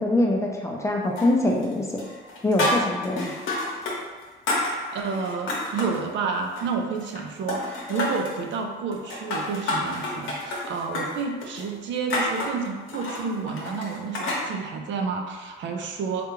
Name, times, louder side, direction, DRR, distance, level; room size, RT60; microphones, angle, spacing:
voice 1, 0.0-2.1 2.4-3.3, left 1 dB, 15° left, 0 dB, 0.4 m, -24 dB
sound 1, 1.2-1.7 2.0-6.0 6.4-7.2 7.5-8.4 8.9-14.4, left 1 dB, 90° left, 0.8 m, -29 dB
voice 2, 4.7-16.3, right 5 dB, 70° right, 3 dB, 0.5 m, -30 dB
3.3 x 2.4 x 3.0 m, 1.4 s
cardioid pair, 90°, 20 cm